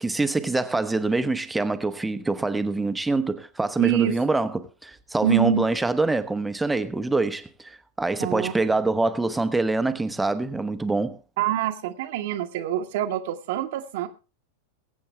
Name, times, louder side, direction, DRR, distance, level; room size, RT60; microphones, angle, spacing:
voice 1, 0.0-11.2, right 3 dB, 5° right, 1.1 m, -25 dB
voice 2, 3.8-4.1 5.2-5.6 8.2-8.5 11.4-14.1, right 11 dB, 50° right, 1.3 m, -25 dB
22.0 x 8.5 x 3.4 m
figure-of-eight pair, 90°, 0 cm